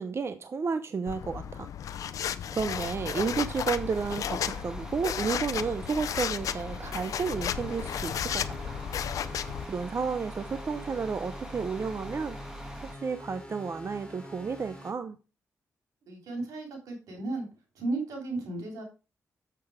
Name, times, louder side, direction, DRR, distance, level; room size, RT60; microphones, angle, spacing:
voice 1, 0.0-1.7 2.5-8.8 9.7-12.4 12.9-15.2, right 5 dB, 50° right, 11 dB, 0.7 m, -32 dB
sound 1, 1.1-9.7, left 9 dB, 75° left, 0.5 m, -34 dB
sound 2, 2.7-13.0, right 1 dB, 10° right, 1.7 m, -43 dB
sound 3, 7.2-14.9, left 1 dB, 10° left, 4.2 m, -45 dB
voice 2, 16.1-17.5 17.7-18.8, right 2 dB, 90° right, 2 dB, 3.2 m, -34 dB
7.1 x 6.9 x 4.9 m, 0.32 s
cardioid pair, 60°, 6 cm